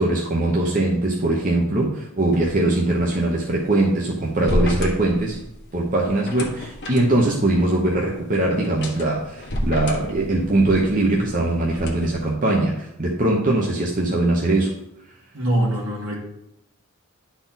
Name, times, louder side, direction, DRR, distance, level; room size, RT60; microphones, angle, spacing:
voice 1, 0.0-5.4 5.7-14.8, right 2 dB, 40° right, -2 dB, 0.8 m, -21 dB
sound 1, 2.3-12.3, equal, 50° left, 1.2 m, -31 dB
voice 2, 15.3-16.2, right 1 dB, 65° right, -2 dB, 2.1 m, -23 dB
10.5 x 4.1 x 3.9 m, 0.83 s
head